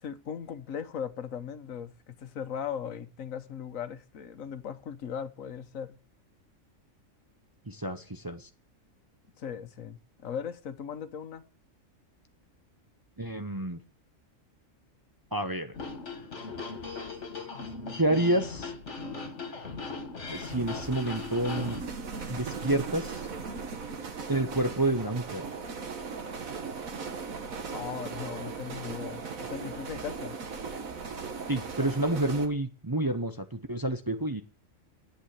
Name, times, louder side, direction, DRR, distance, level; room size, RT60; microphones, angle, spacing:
voice 1, 0.0-6.0 9.4-11.4 27.7-30.4, left 8 dB, 75° left, 1.4 m, -38 dB
voice 2, 7.7-8.5 13.2-13.8 15.3-15.8 18.0-18.7 20.3-21.8 22.3-23.3 24.3-25.4 31.5-34.4, right 1 dB, 20° right, 0.7 m, -29 dB
sound 1, 15.7-21.8, left 4 dB, 60° left, 2.2 m, -38 dB
sound 2, 20.3-32.5, right 5 dB, 80° right, 1.9 m, -38 dB
10.5 x 8.4 x 8.3 m
omnidirectional pair, 1.4 m